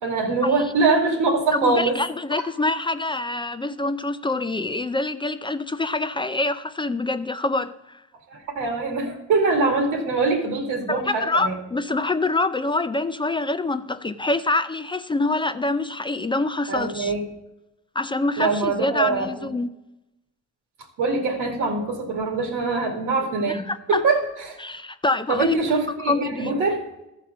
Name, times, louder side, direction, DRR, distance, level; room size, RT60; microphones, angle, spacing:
voice 1, 0.0-2.0 8.3-11.5 16.7-17.2 18.4-19.3 21.0-23.6 23.9-24.2 24.5-24.6 25.3-26.8, right 3 dB, 90° right, 2.2 m, -23 dB
voice 2, 1.5-8.0 10.9-17.1 18.0-19.7 23.5-24.0 24.6-25.6 26.1-26.5, left 2 dB, 15° left, 0.4 m, -25 dB
13.5 x 4.7 x 6.0 m
cardioid pair, 90°, 30 cm